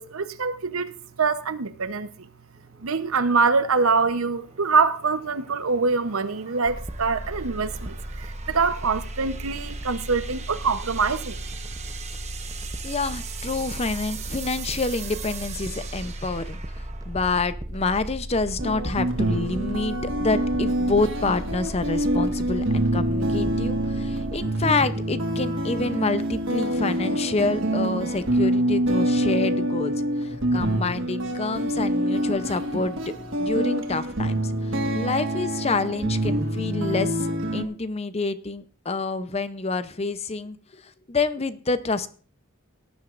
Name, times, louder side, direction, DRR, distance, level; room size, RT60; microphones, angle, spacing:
voice 1, 0.0-2.1 2.8-11.4, right 4 dB, 80° right, 0.9 m, -24 dB
sound 1, 2.6-18.0, right 7 dB, 30° right, 1.0 m, -42 dB
sound 2, 6.6-24.4, equal, 15° right, 0.6 m, -36 dB
voice 2, 12.8-16.6 17.1-29.9 30.2-42.1, left 3 dB, 30° left, 0.6 m, -28 dB
sound 3, 18.6-37.6, right 1 dB, 60° right, 1.5 m, -26 dB
18.0 x 10.5 x 2.5 m
head